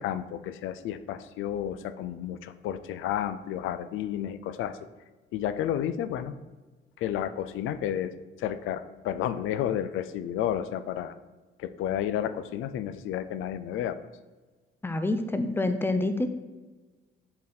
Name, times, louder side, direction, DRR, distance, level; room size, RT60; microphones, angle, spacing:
voice 1, 0.0-4.8 5.3-6.4 7.0-8.1 8.4-11.1 11.6-14.0, left 10 dB, 85° left, 12 dB, 0.5 m, -31 dB
voice 2, 14.8-16.3, left 2 dB, 10° left, 8 dB, 0.6 m, -27 dB
7.5 x 4.0 x 4.3 m, 1.3 s
cardioid pair, 90°, 20 cm